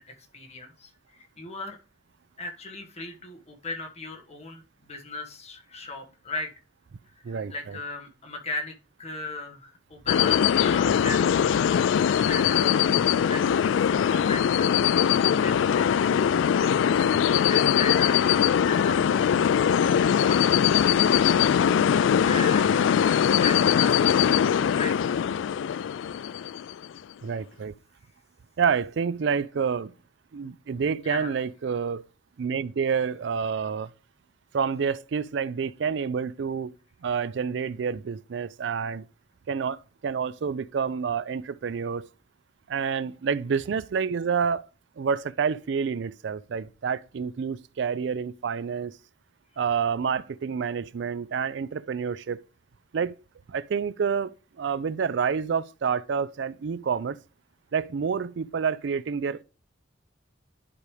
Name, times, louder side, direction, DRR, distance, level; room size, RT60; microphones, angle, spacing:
voice 1, 0.0-1.8 2.4-6.5 7.1-15.9 16.5-19.7 20.3-21.4 22.0-25.1 31.0-31.4, left 3 dB, 35° left, 1.6 m, -38 dB
voice 2, 7.2-7.8 27.2-27.7 28.6-29.9 30.3-32.1 32.4-33.9 34.5-36.7 37.0-39.0 39.5-42.1 42.7-44.7 45.0-48.9 49.6-52.4 52.9-53.2 53.5-57.2 57.7-59.4, right 6 dB, 65° right, 0.4 m, -28 dB
sound 1, 10.1-26.9, left 8 dB, 75° left, 0.3 m, -22 dB
11.0 x 5.0 x 3.3 m
head